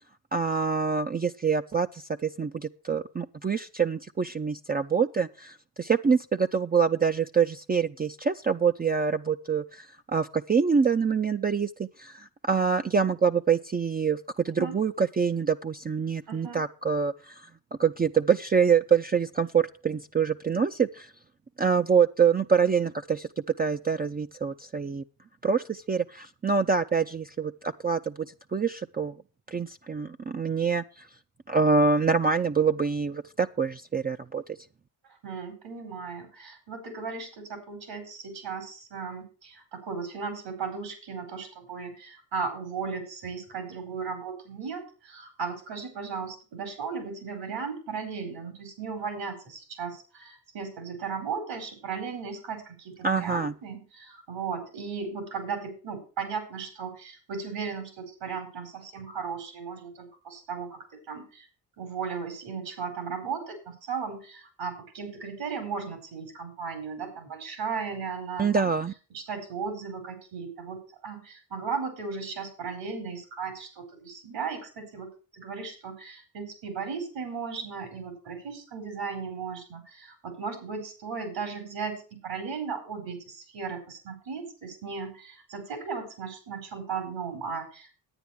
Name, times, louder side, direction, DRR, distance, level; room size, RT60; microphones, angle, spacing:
voice 1, 0.3-17.5 17.8-21.1 21.6-23.3 23.6-25.0 25.4-28.1 28.5-29.2 29.5-31.1 31.5-34.4 53.0-53.5 68.4-68.9, right 6 dB, 20° right, 6 dB, 0.5 m, -25 dB
voice 2, 16.3-16.6 35.2-61.5 61.8-68.7 69.1-75.1 75.4-88.0, right 5 dB, 80° right, 7 dB, 4.6 m, -36 dB
9.9 x 9.2 x 4.7 m, 0.36 s
supercardioid pair, 65°, 43 cm